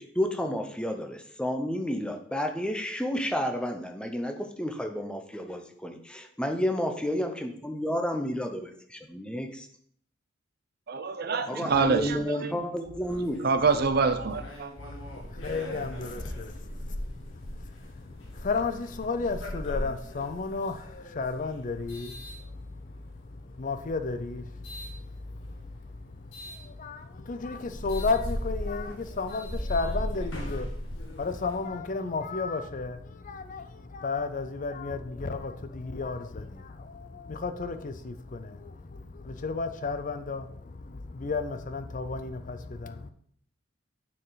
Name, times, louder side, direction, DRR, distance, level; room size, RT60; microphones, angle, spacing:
voice 1, 0.0-9.7 11.5-13.4, equal, 5° left, 0.7 m, -31 dB
voice 2, 10.9-12.6 13.4-14.7, right 4 dB, 55° right, 0.7 m, -26 dB
sound 1, 13.0-23.0 23.7-24.9 26.3-26.6 27.1-27.2 27.5-31.7, equal, 75° left, 1.9 m, -38 dB
voice 3, 14.8-43.1, left 4 dB, 45° left, 0.5 m, -34 dB
9.5 x 4.6 x 4.0 m
head